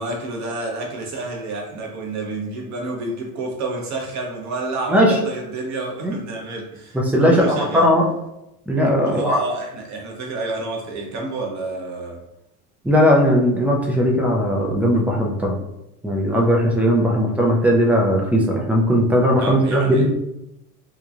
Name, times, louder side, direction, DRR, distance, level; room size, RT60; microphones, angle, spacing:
voice 1, 0.0-7.9 9.0-12.2 19.4-20.0, right 2 dB, 40° right, 0 dB, 0.9 m, -29 dB
voice 2, 6.9-8.0 8.7-9.4 12.8-15.6 16.0-20.1, equal, 5° right, -2 dB, 0.4 m, -18 dB
3.1 x 2.2 x 2.4 m, 0.86 s
hypercardioid pair, 90°, 44 cm